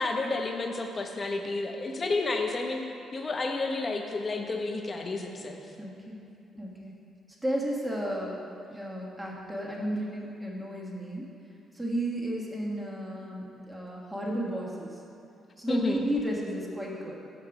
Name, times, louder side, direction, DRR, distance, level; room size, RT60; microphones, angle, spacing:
voice 1, 0.0-2.8 3.1-5.6 15.7-16.0, left 3 dB, 35° left, 3 dB, 0.8 m, -31 dB
voice 2, 5.8-6.2 6.5-7.0 7.4-8.4 8.7-11.3 11.7-15.0 15.6-17.2, right 1 dB, 10° right, -4 dB, 1.3 m, -33 dB
6.5 x 5.0 x 5.9 m, 2.7 s
cardioid pair, 90°, 0 cm